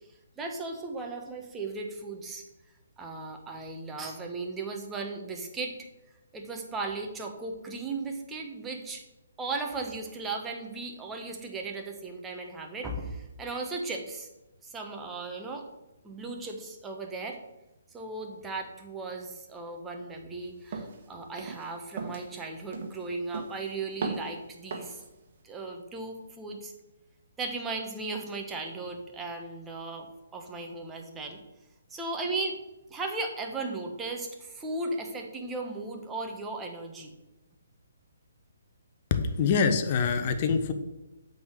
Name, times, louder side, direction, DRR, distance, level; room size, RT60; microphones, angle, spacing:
voice 1, 0.4-2.4 3.0-5.7 6.3-9.0 9.4-14.3 14.6-15.6 16.0-17.4 17.9-25.0 25.4-26.7 27.4-30.1 30.3-31.4 31.9-32.6 32.9-37.1, right 3 dB, 10° right, 2 dB, 1.3 m, -36 dB
sound 1, 20.7-21.0 21.4-21.7 22.0-22.3 22.7-23.1 23.3-23.7 24.0-24.3 24.7-25.0, right 4 dB, 50° right, 1.5 m, -36 dB
voice 2, 39.1-40.7, left 5 dB, 40° left, 8 dB, 0.9 m, -25 dB
8.5 x 4.0 x 6.5 m, 1.0 s
figure-of-eight pair, 140°, 0 cm